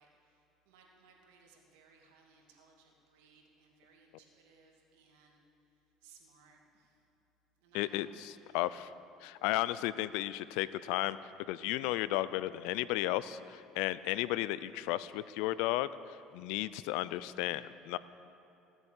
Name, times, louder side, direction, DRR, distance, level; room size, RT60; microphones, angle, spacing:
voice 1, 0.0-5.4 6.0-7.0 7.6-8.0 8.4-8.8, right 5 dB, 85° right, 0 dB, 2.2 m, -63 dB
voice 2, 7.7-8.1 8.5-8.9 9.2-11.2 11.5-18.0, left 16 dB, 80° left, 16 dB, 0.4 m, -34 dB
16.5 x 8.0 x 7.3 m, 2.8 s
supercardioid pair, 105°, 0 cm